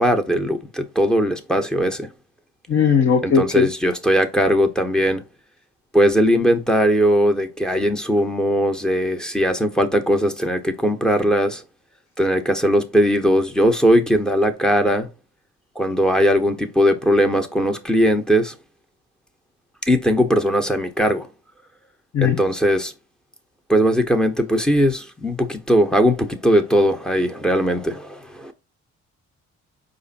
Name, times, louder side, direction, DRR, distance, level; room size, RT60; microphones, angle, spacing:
voice 1, 0.0-2.1 3.2-5.2 5.9-11.6 12.2-15.1 15.8-18.5 19.9-21.3 22.2-22.9 23.7-28.5, equal, ahead, 0.9 m, -19 dB
voice 2, 2.7-3.7 22.1-22.4, left 6 dB, 45° left, 0.8 m, -17 dB
4.8 x 2.6 x 4.0 m
cardioid pair, 90°, 30 cm